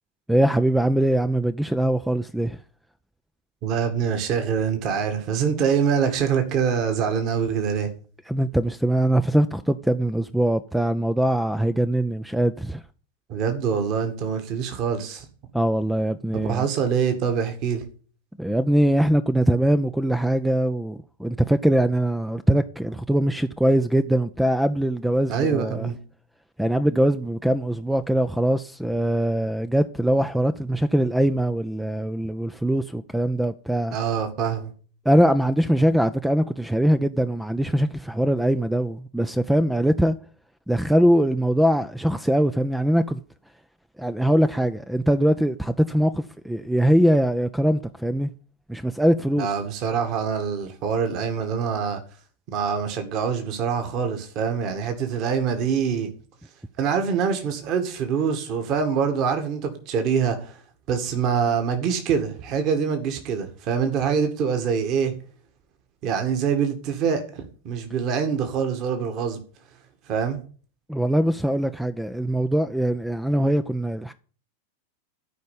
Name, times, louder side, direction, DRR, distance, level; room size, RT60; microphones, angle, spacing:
voice 1, 0.3-2.6 8.3-12.8 15.5-16.7 18.4-25.9 26.6-34.0 35.1-40.2 40.7-43.2 44.0-48.3 48.7-49.5 70.9-74.1, right 1 dB, 5° right, 0.5 m, -22 dB
voice 2, 3.6-7.9 13.3-15.3 16.3-17.8 25.3-26.0 33.9-34.7 49.4-52.0 52.5-56.1 56.8-60.6 60.9-65.2 66.0-69.4 70.1-70.4, right 7 dB, 40° right, 2.1 m, -25 dB
13.5 x 5.3 x 8.7 m
figure-of-eight pair, 90°, 0 cm